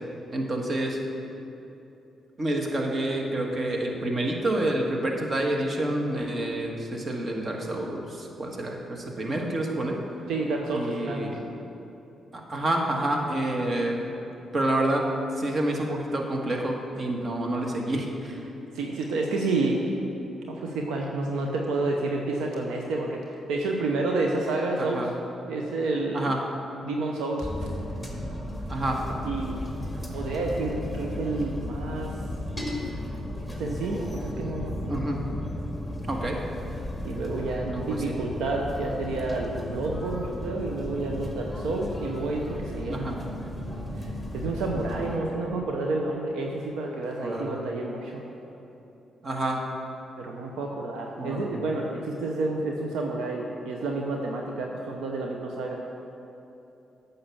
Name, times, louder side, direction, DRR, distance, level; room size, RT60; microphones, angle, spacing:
voice 1, 0.3-1.0 2.4-10.0 10.7-11.3 12.3-14.0 14.5-15.1 15.4-18.4 24.8-25.1 26.1-26.4 28.7-29.0 34.9-35.2 36.1-36.4 37.6-38.1 42.9-43.2 47.2-47.6 49.2-49.6 51.2-51.6, right 1 dB, 45° right, 1 dB, 1.5 m, -28 dB
voice 2, 10.3-11.3 18.7-19.8 20.5-25.1 25.5-26.3 26.8-27.7 29.2-29.6 30.1-32.1 33.6-35.1 37.0-43.2 44.0-48.2 50.2-55.8, right 2 dB, 85° right, 0 dB, 0.7 m, -29 dB
sound 1, 27.4-45.2, left 1 dB, 10° right, 1.8 m, -35 dB
8.7 x 5.7 x 7.1 m, 2.9 s
supercardioid pair, 60°, 0 cm